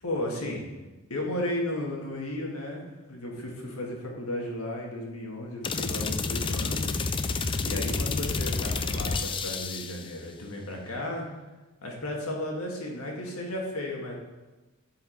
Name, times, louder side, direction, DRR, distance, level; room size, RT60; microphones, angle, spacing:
voice 1, 0.0-0.7 1.1-7.1 7.6-11.2 11.8-14.1, left 1 dB, 80° left, -1 dB, 1.7 m, -34 dB
sound 1, 5.6-10.1, left 4 dB, 25° left, 0.4 m, -29 dB
8.1 x 4.7 x 4.4 m, 1.1 s
head